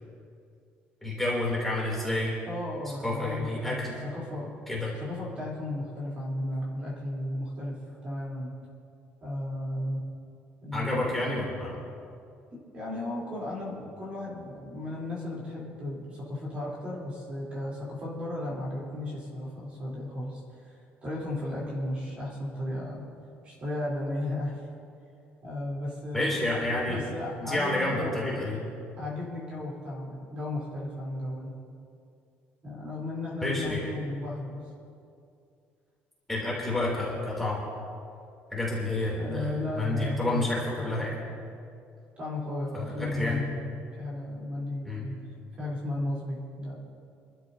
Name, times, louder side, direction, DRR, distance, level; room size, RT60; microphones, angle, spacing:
voice 1, 1.0-2.4 3.0-4.0 4.7-4.9 10.7-11.8 26.1-27.0 27.4-28.6 33.4-33.9 36.3-37.6 38.5-41.2 42.7-43.4 44.8-45.0, left 2 dB, 5° left, -6 dB, 3.0 m, -29 dB
voice 2, 2.5-3.8 4.1-4.5 5.0-8.5 9.2-10.0 10.6-11.1 12.5-23.1 23.4-24.6 25.4-26.4 26.9-28.6 29.0-31.5 32.6-34.6 39.1-40.5 40.8-41.0 42.2-43.6 44.0-45.2 45.6-46.7, left 1 dB, 30° right, -5 dB, 3.5 m, -35 dB
28.0 x 12.5 x 2.8 m, 2.5 s
cardioid pair, 180°, 4 cm